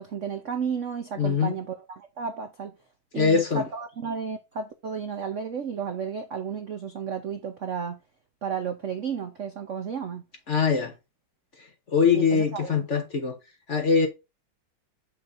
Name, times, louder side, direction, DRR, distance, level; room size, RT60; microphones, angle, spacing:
voice 1, 0.0-2.7 3.1-8.0 8.4-10.2 12.1-12.9, right 6 dB, 60° right, 0.8 m, -33 dB
voice 2, 1.2-1.5 3.1-3.7 10.5-10.9 11.9-13.4 13.7-14.1, left 5 dB, 45° left, 1.1 m, -22 dB
7.2 x 6.2 x 2.6 m
omnidirectional pair, 2.2 m